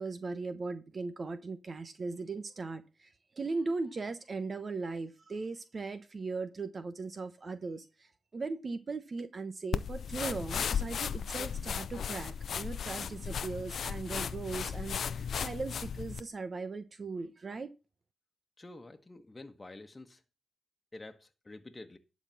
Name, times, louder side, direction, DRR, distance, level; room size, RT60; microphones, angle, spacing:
voice 1, 0.0-3.1 3.4-17.7, right 3 dB, 50° right, 1.0 m, -38 dB
sound 1, 9.7-16.2, left 7 dB, 70° left, 0.6 m, -35 dB
voice 2, 18.6-20.2 20.9-22.0, left 2 dB, 25° left, 1.3 m, -49 dB
11.5 x 4.3 x 6.9 m
supercardioid pair, 45°, 0 cm